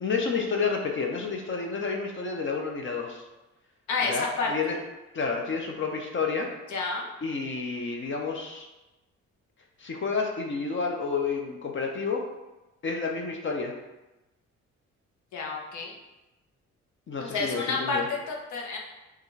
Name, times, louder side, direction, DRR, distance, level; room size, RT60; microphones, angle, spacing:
voice 1, 0.0-3.2 4.0-4.8 5.1-6.5 7.2-8.7 9.8-12.2 12.8-13.7 17.1-18.0, left 4 dB, 40° left, 1 dB, 0.7 m, -30 dB
voice 2, 3.9-4.5 6.7-7.1 15.3-15.9 17.2-18.8, left 4 dB, 75° left, -1 dB, 1.0 m, -30 dB
5.7 x 2.5 x 3.2 m, 1.0 s
cardioid pair, 90°, 30 cm